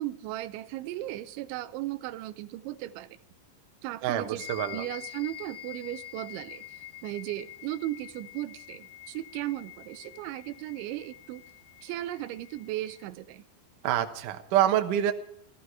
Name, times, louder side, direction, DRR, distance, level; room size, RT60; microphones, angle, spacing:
voice 1, 0.0-3.2 3.8-4.4 4.7-11.4 11.8-13.4, right 15 dB, 90° right, 13 dB, 3.1 m, -36 dB
voice 2, 4.0-4.8 13.8-15.1, right 11 dB, 75° right, 6 dB, 2.0 m, -26 dB
sound 1, 4.4-13.1, left 14 dB, 65° left, 3.2 m, -46 dB
15.5 x 14.5 x 4.8 m, 0.67 s
omnidirectional pair, 5.2 m